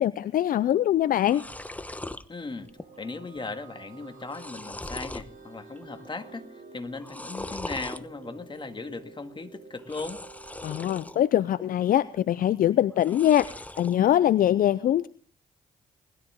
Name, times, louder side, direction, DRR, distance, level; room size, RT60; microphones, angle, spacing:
voice 1, 0.0-1.4 10.6-13.5 13.8-15.1, left 11 dB, 60° left, 17 dB, 0.5 m, -23 dB
sound 1, 0.7-0.8 1.0-2.2 2.7-3.1 3.4-3.5 4.0-5.3 5.8-6.2 7.0-8.0 9.8-11.2 11.6-12.2 12.9-14.0, left 1 dB, 10° left, 1.0 m, -40 dB
sound 2, 2.2-13.0, right 4 dB, 55° right, 4.6 m, -51 dB
voice 2, 2.3-2.7 3.0-10.2, left 3 dB, 30° left, 7 dB, 2.1 m, -38 dB
20.0 x 13.0 x 3.6 m, 0.41 s
hypercardioid pair, 50°, 17 cm